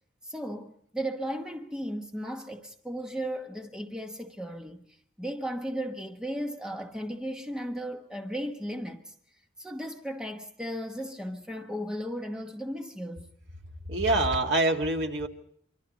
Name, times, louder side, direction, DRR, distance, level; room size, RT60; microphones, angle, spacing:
voice 1, 0.2-4.9 5.2-9.1 9.6-13.2, equal, 5° right, 1.1 m, -35 dB
voice 2, 13.9-15.3, right 2 dB, 70° right, 2.0 m, -25 dB
25.5 x 25.0 x 4.1 m
head